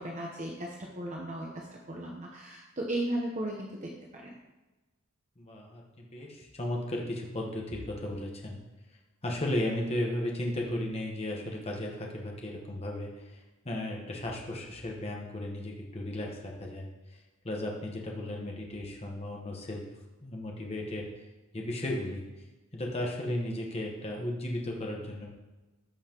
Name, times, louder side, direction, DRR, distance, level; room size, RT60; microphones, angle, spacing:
voice 1, 0.0-4.4, right 1 dB, 35° right, -1 dB, 0.9 m, -36 dB
voice 2, 5.4-8.6 9.2-17.2 17.4-19.9 20.2-21.1 21.5-22.3 22.7-25.3, left 1 dB, 30° left, 0 dB, 1.1 m, -35 dB
14.0 x 5.6 x 2.9 m, 1.1 s
head